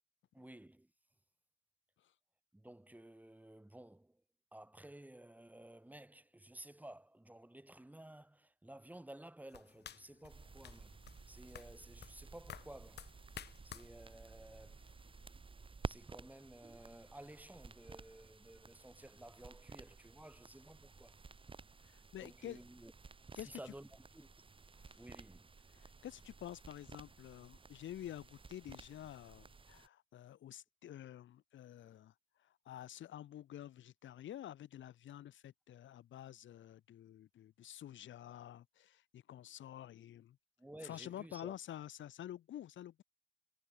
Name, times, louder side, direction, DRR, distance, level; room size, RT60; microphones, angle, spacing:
voice 1, 0.3-0.9 2.5-4.2 4.5-11.0 11.3-13.1 13.6-14.9 15.8-21.2 22.2-22.9 23.3-24.3 24.9-25.5 40.6-41.5, right 1 dB, 10° right, 3.6 m, -54 dB
sound 1, 9.5-15.3, left 10 dB, 55° left, 1.1 m, -55 dB
sound 2, 10.3-29.9, right 4 dB, 25° right, 2.0 m, -53 dB
voice 2, 21.8-22.6 23.4-23.7 24.8-25.0 25.7-32.1 32.4-40.4 40.8-43.0, left 11 dB, 75° left, 3.7 m, -49 dB
cardioid pair, 90°, 20 cm